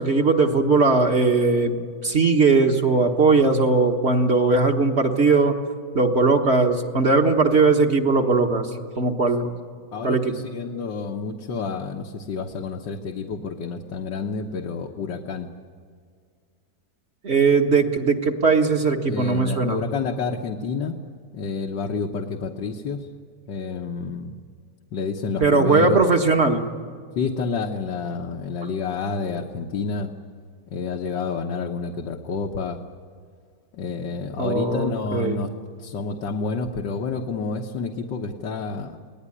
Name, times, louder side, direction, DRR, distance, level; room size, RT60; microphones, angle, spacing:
voice 1, 0.0-5.5 5.9-8.7 9.0-9.5 10.0-10.4 17.2-19.8 25.4-26.7 34.4-35.5, right 3 dB, 40° right, 4 dB, 1.7 m, -19 dB
voice 2, 9.9-15.5 19.1-21.0 21.3-23.1 23.5-24.4 24.9-26.0 27.2-30.1 30.7-32.8 33.7-35.5 35.8-39.0, left 4 dB, 80° left, 1 dB, 1.9 m, -29 dB
28.5 x 19.5 x 9.9 m, 2.1 s
omnidirectional pair, 1.9 m